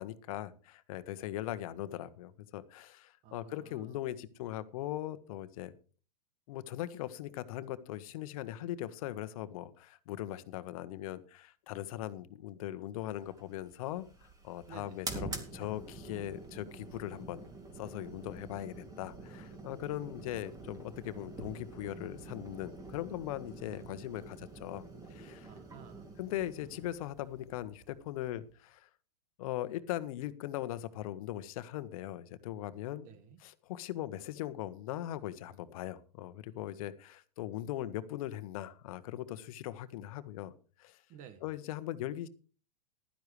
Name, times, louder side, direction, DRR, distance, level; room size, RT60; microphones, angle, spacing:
voice 1, 0.0-5.7 6.5-17.4 17.7-24.8 25.1-25.5 26.2-28.9 29.4-33.1 33.4-40.5 40.8-41.0 41.4-42.3, left 13 dB, 55° left, 12 dB, 1.2 m, -40 dB
voice 2, 3.2-4.0 14.7-15.0 25.4-26.1 33.0-33.4 41.1-41.4, right 7 dB, 40° right, 12 dB, 1.6 m, -53 dB
sound 1, 13.2-28.5, right 3 dB, 15° right, 2.6 m, -47 dB
15.0 x 12.0 x 3.3 m, 0.37 s
hypercardioid pair, 115°, 21 cm